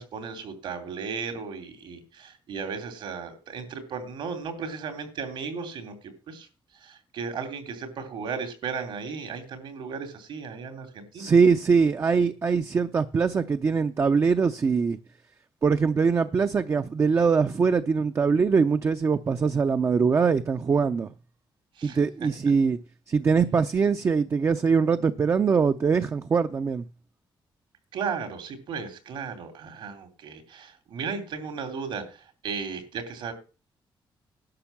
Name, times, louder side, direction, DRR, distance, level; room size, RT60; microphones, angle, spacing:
voice 1, 0.0-6.5 6.7-11.3 21.7-22.0 27.9-33.3, right 5 dB, 75° right, 3.0 m, -35 dB
voice 2, 11.1-15.0 15.6-21.1 21.8-22.8 23.1-26.8, right 5 dB, 30° right, 0.5 m, -22 dB
11.5 x 6.1 x 7.3 m
cardioid pair, 150°, 8 cm